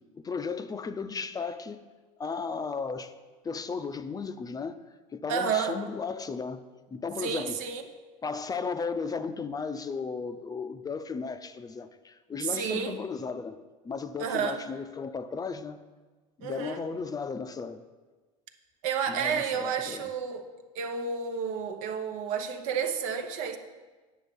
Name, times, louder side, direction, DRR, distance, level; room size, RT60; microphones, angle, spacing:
voice 1, 0.1-1.8 2.2-3.1 3.4-4.8 5.1-6.6 6.9-7.6 8.2-13.6 13.8-15.8 16.4-17.8 19.1-20.1, left 5 dB, 20° left, 0.5 m, -35 dB
voice 2, 5.3-5.7 7.2-7.8 12.4-13.0 14.2-14.6 16.4-16.8 18.8-20.5 20.7-23.6, right 6 dB, 75° right, 1.0 m, -31 dB
9.4 x 6.2 x 5.3 m
supercardioid pair, 95°, 18 cm